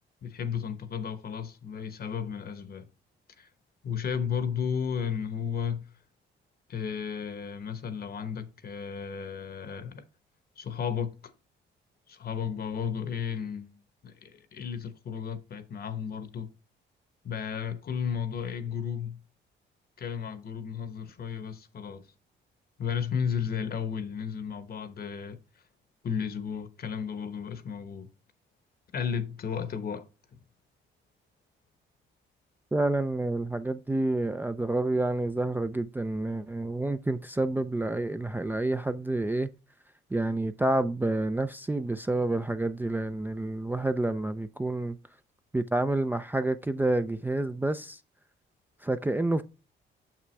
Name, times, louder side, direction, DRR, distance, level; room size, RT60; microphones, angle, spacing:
voice 1, 0.2-2.9 3.4-3.5 3.8-5.9 6.7-10.0 10.6-11.2 12.1-16.5 17.2-19.2 20.0-22.0 22.8-25.4 26.0-28.1 28.9-30.1 30.3-30.4, left 7 dB, 50° left, 1.0 m, -33 dB
voice 2, 32.7-39.5 40.1-45.0 45.5-48.0 48.8-49.4, right 2 dB, 10° right, 0.4 m, -28 dB
6.6 x 6.0 x 3.2 m
cardioid pair, 90°, 20 cm